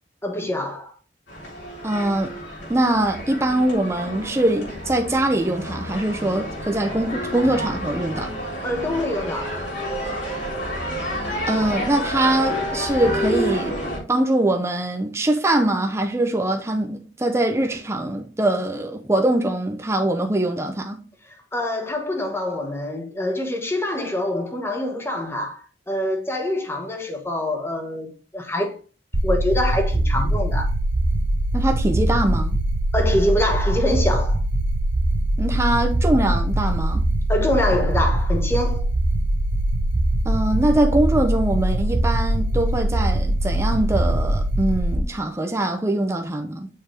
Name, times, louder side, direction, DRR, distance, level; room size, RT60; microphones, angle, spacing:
voice 1, 0.2-0.9 8.6-9.7 21.3-28.8 29.2-30.8 32.9-34.4 37.3-38.9, left 1 dB, 15° left, 1.1 m, -25 dB
sound 1, 1.3-14.0, equal, 70° left, 3.8 m, -29 dB
voice 2, 1.8-2.3 2.7-8.4 11.5-13.8 14.1-21.0 31.5-32.6 35.4-37.1 40.2-46.7, right 1 dB, 15° right, 0.7 m, -22 dB
sound 2, 29.1-45.0, right 1 dB, 75° right, 1.0 m, -22 dB
6.6 x 4.5 x 3.4 m
head